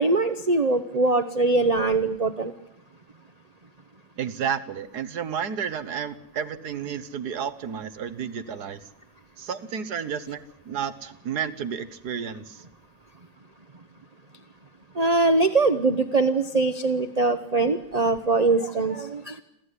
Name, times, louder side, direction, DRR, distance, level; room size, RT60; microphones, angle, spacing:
voice 1, 0.0-2.5 14.9-19.4, right 3 dB, 35° right, 10 dB, 0.6 m, -22 dB
voice 2, 4.2-8.8 9.4-12.6, right 7 dB, 60° right, 12 dB, 1.5 m, -31 dB
28.0 x 13.5 x 9.7 m, 0.85 s
omnidirectional pair, 2.1 m